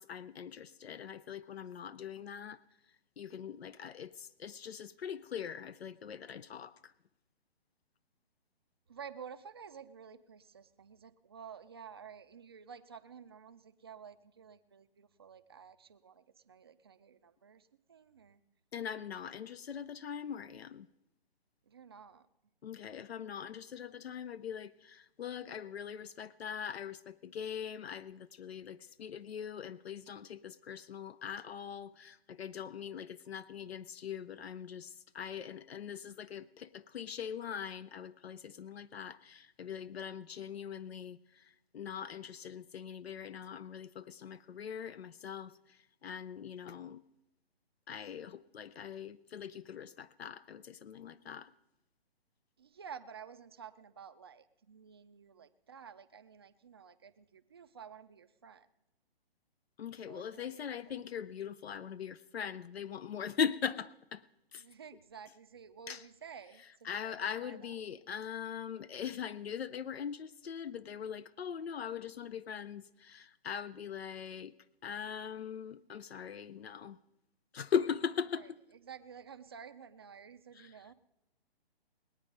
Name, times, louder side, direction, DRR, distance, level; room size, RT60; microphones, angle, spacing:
voice 1, 0.0-2.6 3.2-6.9 18.7-20.9 22.6-47.0 47.9-51.5 59.8-64.2 64.5-64.6 65.9-66.1 66.8-74.5 74.8-77.0 77.5-78.6 80.5-80.8, left 7 dB, 85° left, 0.6 m, -41 dB
voice 2, 8.9-18.4 21.7-22.2 52.6-58.7 60.1-61.0 64.6-67.7 78.3-78.5 78.9-80.9, right 7 dB, 25° right, 0.4 m, -52 dB
20.5 x 8.9 x 5.2 m
hypercardioid pair, 150°, 30 cm